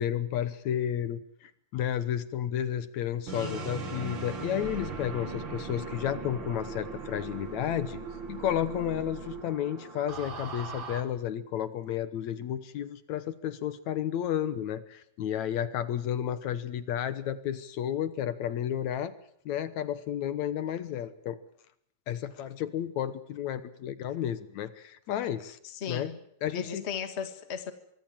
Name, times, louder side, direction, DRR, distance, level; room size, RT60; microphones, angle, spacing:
voice 1, 0.0-8.0 8.3-19.1 19.5-21.4 22.1-25.6 25.9-26.1 26.4-26.8, left 10 dB, 70° left, 13 dB, 2.3 m, -32 dB
voice 2, 3.2-3.8 25.6-26.2 26.5-27.7, left 7 dB, 30° left, 8 dB, 1.4 m, -37 dB
sound 1, 3.3-11.0, right 4 dB, 40° right, 2.5 m, -39 dB
24.5 x 23.5 x 7.6 m, 0.71 s
omnidirectional pair, 3.5 m